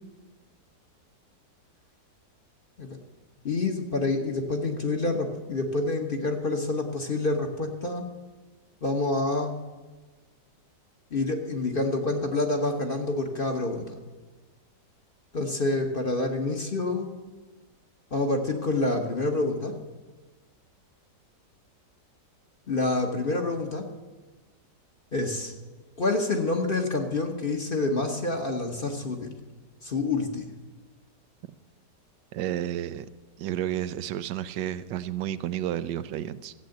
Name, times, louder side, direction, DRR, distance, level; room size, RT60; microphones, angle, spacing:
voice 1, 3.4-8.0 8.8-9.6 11.1-14.0 15.3-17.1 18.1-19.7 22.7-23.9 25.1-25.5 26.0-29.4 29.8-30.5, left 2 dB, 35° left, 3 dB, 1.1 m, -27 dB
voice 2, 32.3-33.1 33.4-36.5, right 11 dB, 90° right, 13 dB, 1.3 m, -31 dB
14.5 x 8.2 x 7.8 m, 1.3 s
omnidirectional pair, 1.9 m